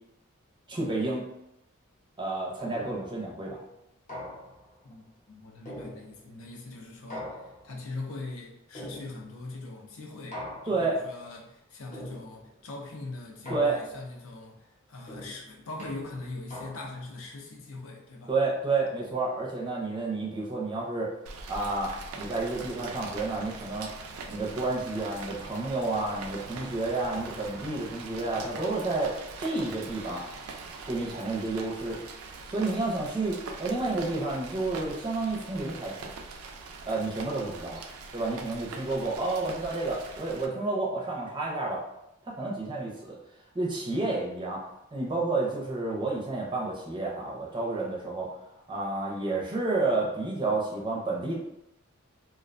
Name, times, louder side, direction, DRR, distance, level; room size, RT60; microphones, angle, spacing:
voice 1, 0.7-1.2 2.2-3.6 10.7-11.0 13.5-13.8 18.3-21.1 21.5-23.9 24.3-30.2 30.9-32.0 32.5-36.1 36.8-37.8 38.1-41.8 42.2-43.2 43.5-48.3 48.7-51.3, right 3 dB, 20° right, -3 dB, 0.5 m, -30 dB
sound 1, 2.7-3.3 4.1-4.8 5.7-6.4 7.1-7.9 8.7-9.5 10.3-11.0 11.9-12.6 13.5-14.2 15.1-17.1, left 1 dB, 35° left, 0.7 m, -42 dB
voice 2, 4.8-10.4 10.7-18.3, left 2 dB, 75° left, 0 dB, 0.6 m, -41 dB
Rain, 21.3-40.5, right 4 dB, 90° right, 0.3 m, -42 dB
2.3 x 2.1 x 2.4 m, 0.84 s
head